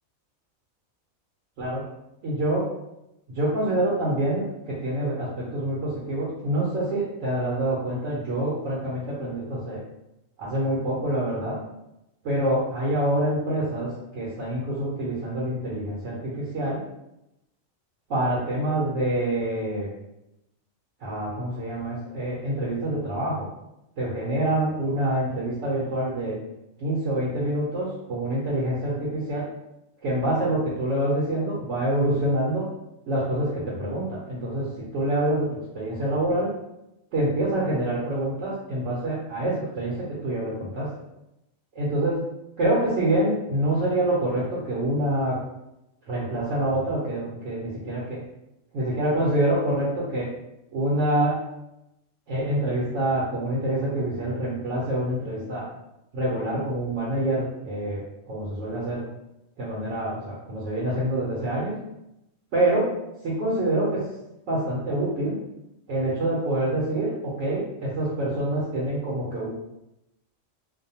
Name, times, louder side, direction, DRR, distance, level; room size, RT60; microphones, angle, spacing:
voice 1, 2.2-2.6 3.3-9.8 10.4-11.6 12.2-16.8 18.1-19.9 21.0-23.5 24.0-26.4 26.8-29.5 30.0-32.7 33.1-35.5 35.7-36.5 37.1-40.9 41.7-42.2 42.6-45.4 46.1-48.2 48.7-50.3 50.7-51.3 52.3-55.7 56.1-59.0 59.6-61.8 62.5-62.9 63.2-64.1 64.5-65.4 65.9-69.5, right 1 dB, 70° right, -6 dB, 1.0 m, -26 dB
2.6 x 2.1 x 2.7 m, 0.86 s
omnidirectional pair, 1.4 m